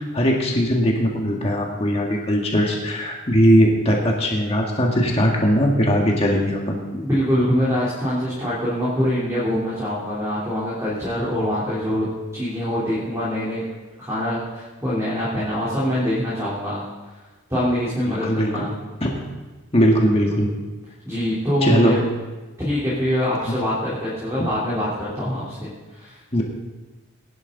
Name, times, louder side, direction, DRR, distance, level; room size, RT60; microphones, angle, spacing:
voice 1, 0.0-6.8 18.1-18.6 19.0-19.1 19.7-20.5 21.6-22.0 26.3-26.4, equal, 25° left, -1 dB, 1.8 m, -19 dB
voice 2, 6.9-12.1 12.3-13.6 14.0-16.8 17.5-18.7 21.1-22.0 22.6-26.2, equal, 15° right, -9 dB, 3.8 m, -24 dB
20.0 x 11.5 x 4.0 m, 1.2 s
head